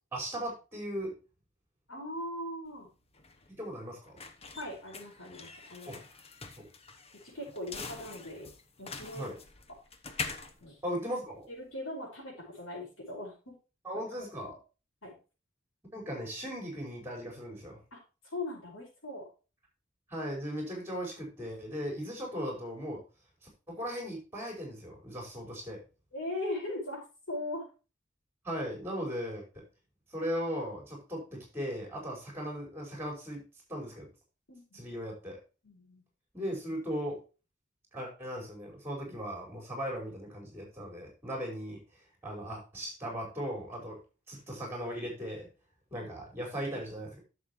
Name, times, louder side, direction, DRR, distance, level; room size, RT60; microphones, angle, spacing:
voice 1, 0.1-1.1 3.5-4.2 5.9-6.0 6.6-6.7 9.1-9.3 10.8-11.5 13.8-14.5 15.9-17.8 20.1-23.0 23.4-25.8 28.4-29.6 30.1-33.4 33.7-34.1 34.7-35.4 36.3-37.2 37.9-41.8 42.2-44.0 44.3-45.5 45.9-47.2, equal, 10° right, 0 dB, 5.0 m, -38 dB
voice 2, 1.9-2.9 4.6-6.0 7.1-8.5 8.8-9.3 10.6-10.8 11.5-13.5 15.0-15.1 17.9-19.3 26.1-27.7 34.5-34.9 35.6-36.0 45.9-46.1, left 1 dB, 85° left, -1 dB, 5.3 m, -40 dB
sound 1, 2.7-11.7, left 4 dB, 30° left, 1.0 m, -44 dB
11.0 x 7.2 x 3.1 m, 0.32 s
head